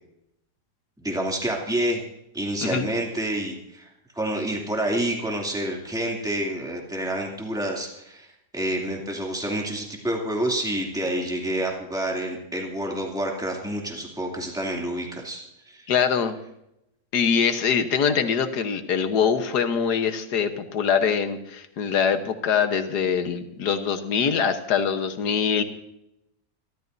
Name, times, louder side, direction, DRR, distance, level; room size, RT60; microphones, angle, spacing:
voice 1, 1.0-2.0 2.3-8.3 8.5-15.9, right 1 dB, ahead, -1 dB, 2.5 m, -28 dB
voice 2, 15.9-16.4 17.1-25.6, left 7 dB, 80° left, 8 dB, 1.7 m, -23 dB
24.5 x 13.5 x 2.7 m, 0.84 s
omnidirectional pair, 1.7 m